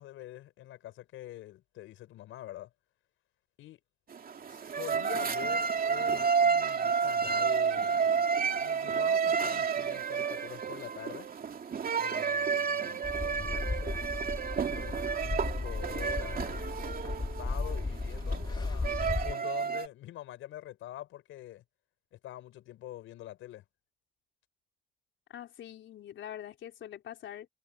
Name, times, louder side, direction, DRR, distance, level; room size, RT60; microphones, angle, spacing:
voice 1, 0.0-2.7 3.6-3.8 4.5-8.0 8.6-11.3 11.9-14.0 14.7-21.6 22.1-23.6, left 14 dB, 85° left, 5.4 m, -46 dB
sound 1, 4.1-19.9, right 6 dB, 45° right, 2.6 m, -31 dB
sound 2, 13.0-19.3, left 3 dB, 20° left, 2.8 m, -35 dB
voice 2, 25.3-27.5, left 11 dB, 70° left, 4.1 m, -44 dB
cardioid pair, 90°, 20 cm